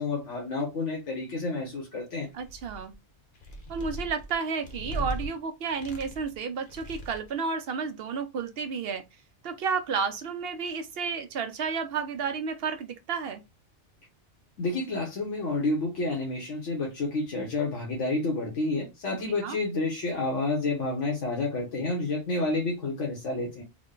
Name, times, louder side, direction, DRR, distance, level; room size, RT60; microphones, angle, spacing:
voice 1, 0.0-2.3 14.6-23.6, left 2 dB, 85° left, 1.3 m, -29 dB
sound 1, 2.3-2.9 3.3-5.3 5.7-6.4 6.7-7.3, right 1 dB, 50° left, 0.9 m, -38 dB
voice 2, 2.3-2.9 3.7-9.0 9.4-13.4 19.2-19.6, right 5 dB, 65° right, 0.7 m, -31 dB
3.7 x 2.1 x 3.6 m
omnidirectional pair, 1.2 m